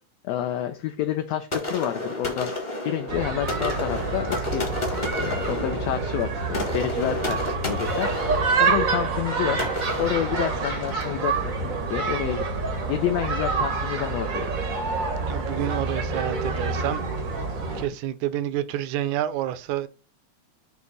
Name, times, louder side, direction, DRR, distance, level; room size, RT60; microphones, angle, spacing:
voice 1, 0.2-2.5 2.9-4.9 5.2-9.6 10.0-12.4 12.9-14.5, left 11 dB, 75° left, 1.6 m, -29 dB
sound 1, 1.5-11.2, left 1 dB, 25° left, 0.9 m, -32 dB
sound 2, 3.1-17.9, right 4 dB, 60° right, 0.8 m, -27 dB
voice 2, 15.3-17.0 17.8-19.9, right 12 dB, 80° right, 2.0 m, -28 dB
8.2 x 2.9 x 5.2 m
omnidirectional pair, 3.4 m